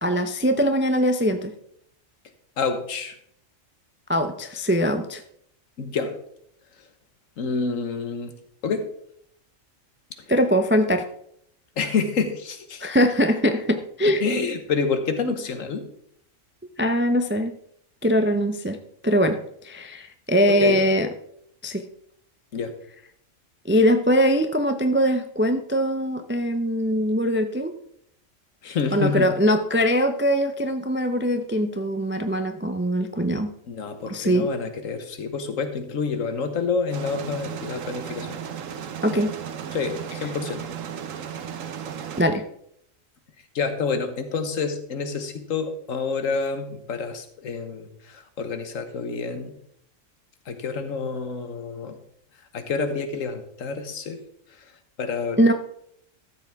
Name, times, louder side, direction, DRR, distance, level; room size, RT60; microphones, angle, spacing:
voice 1, 0.0-1.5 4.1-5.2 10.3-11.0 12.8-14.2 16.8-17.5 18.0-18.8 19.0-19.4 19.6-21.1 21.6-21.8 23.7-27.7 28.9-33.5 34.1-34.4 39.0-39.3 42.2-42.4 55.4-55.5, equal, 20° right, 7 dB, 0.3 m, -22 dB
voice 2, 2.6-3.1 5.8-6.1 7.4-8.3 8.6-8.8 11.8-12.8 14.2-15.8 20.5-20.8 22.5-22.7 28.6-29.3 33.7-38.3 39.7-40.6 43.5-49.5 50.5-52.0 52.5-54.2 55.0-55.4, left 5 dB, 80° left, 8 dB, 1.5 m, -28 dB
sound 1, 36.9-42.2, right 8 dB, 75° right, 1.2 m, -35 dB
13.0 x 7.5 x 3.5 m, 0.70 s
omnidirectional pair, 1.4 m